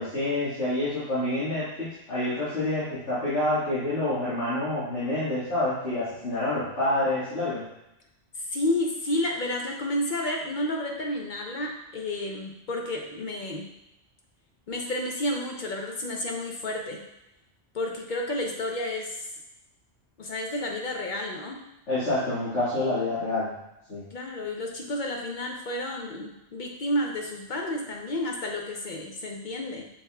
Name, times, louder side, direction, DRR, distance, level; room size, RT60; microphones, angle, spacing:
voice 1, 0.0-7.6 21.9-23.5 23.9-24.0, left 1 dB, 80° left, -13 dB, 2.0 m, -27 dB
voice 2, 8.4-13.7 14.7-17.0 17.7-19.3 20.2-21.6 24.1-29.9, left 1 dB, 55° left, 1 dB, 0.6 m, -31 dB
6.3 x 3.6 x 2.3 m, 0.88 s
omnidirectional pair, 1.2 m